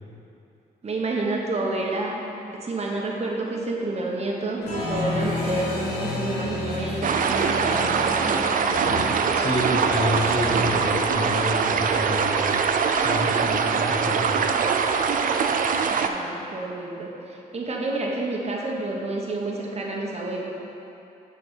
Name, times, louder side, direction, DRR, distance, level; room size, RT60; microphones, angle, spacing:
voice 1, 0.8-2.2 2.6-8.4 16.0-20.4, right 2 dB, 40° right, -2 dB, 1.2 m, -29 dB
Applause, 4.6-13.0, left 2 dB, 90° left, 1.8 m, -32 dB
sound 1, 7.0-16.1, right 6 dB, 55° right, 0.5 m, -23 dB
voice 2, 9.3-12.6 12.9-14.4, left 1 dB, 40° left, -3 dB, 1.5 m, -28 dB
6.4 x 4.6 x 6.5 m, 2.8 s
cardioid pair, 80°, 16 cm